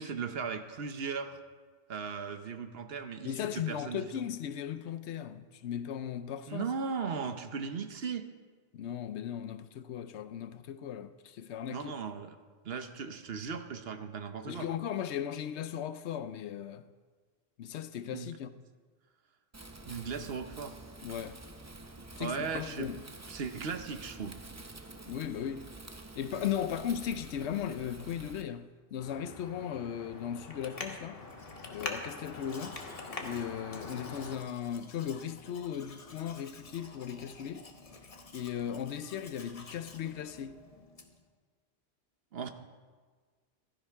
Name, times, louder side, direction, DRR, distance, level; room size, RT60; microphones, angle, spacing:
voice 1, 0.0-1.4 1.9-3.3 3.7-4.3 6.5-8.3 11.7-12.4 12.6-14.7 18.1-18.3 19.9-20.8 22.1-22.9 23.3-24.4 42.3-42.5, right 5 dB, 65° right, 1.1 m, -37 dB
voice 2, 3.2-6.7 7.2-7.3 8.7-11.9 14.5-16.9 17.6-18.6 21.0-21.4 22.2-23.0 25.0-25.7 26.2-31.2 31.7-32.8 33.2-37.7 38.3-40.6, left 9 dB, 90° left, 0.9 m, -37 dB
Wind, 19.5-28.4, right 2 dB, 20° right, 0.6 m, -48 dB
Traffic noise roadway noise, 29.0-34.4, left 3 dB, 60° left, 1.5 m, -43 dB
Domestic sounds home sounds, 31.2-41.3, left 3 dB, 35° left, 0.9 m, -53 dB
15.5 x 13.0 x 3.5 m
omnidirectional pair, 1.1 m